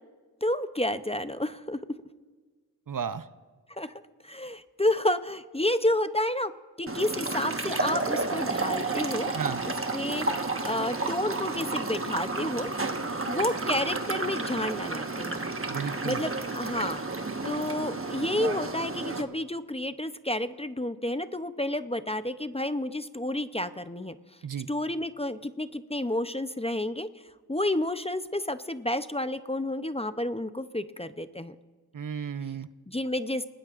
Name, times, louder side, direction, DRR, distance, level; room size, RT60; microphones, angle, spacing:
voice 1, 0.4-1.8 3.7-6.5 6.8-9.3 9.6-12.7 13.3-15.4 16.0-17.0 17.4-24.2 24.7-27.1 27.5-31.6 32.9-33.4, left 1 dB, 15° left, 11 dB, 0.6 m, -30 dB
voice 2, 2.9-3.3 9.3-9.6 15.7-16.2 24.4-24.7 31.9-32.7, right 7 dB, 55° right, 13 dB, 0.7 m, -33 dB
sound 1, 6.9-19.2, right 3 dB, 35° right, 1.3 m, -31 dB
30.0 x 18.5 x 2.5 m, 1.5 s
wide cardioid pair, 55°, 39 cm